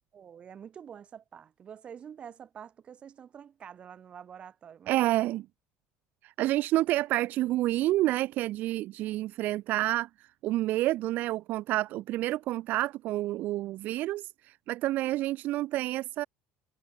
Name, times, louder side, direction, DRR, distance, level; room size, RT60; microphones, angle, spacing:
voice 1, 0.1-5.3, right 8 dB, 25° right, 4.9 m, -47 dB
voice 2, 4.9-5.4 6.2-10.1 10.4-16.2, right 16 dB, 45° right, 0.4 m, -29 dB
cardioid pair, 165°, 4 cm